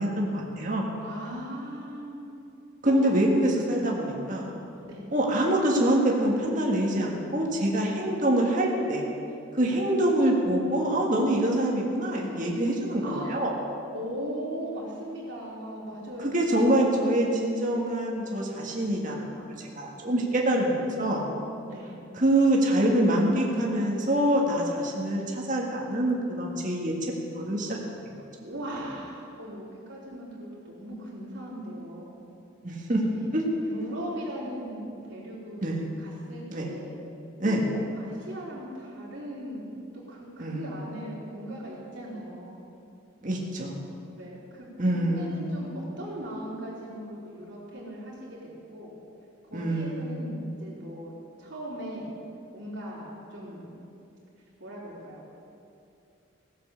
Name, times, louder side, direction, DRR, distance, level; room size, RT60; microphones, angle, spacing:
voice 1, 0.0-0.9 2.8-4.5 5.1-9.1 9.5-13.5 16.2-19.3 19.7-21.2 22.1-26.9 27.3-27.8 32.6-33.0 33.3-33.4 33.8-33.9 35.6-35.9 36.5-36.7 37.4-37.6 40.4-40.7 43.2-43.8 44.8-45.6 49.5-50.3, right 1 dB, 40° right, -2 dB, 1.7 m, -25 dB
voice 2, 1.0-2.2 2.8-3.1 4.8-5.0 9.6-9.7 13.0-13.3 13.9-16.9 20.9-21.2 21.6-21.9 28.4-32.2 33.0-33.3 33.6-37.0 37.4-39.7 40.1-42.6 44.2-48.4 48.7-48.9 49.5-51.1 51.4-52.1 52.5-53.7 54.6-55.3, equal, 65° right, -10 dB, 3.3 m, -39 dB
16.5 x 7.5 x 7.1 m, 2.7 s
head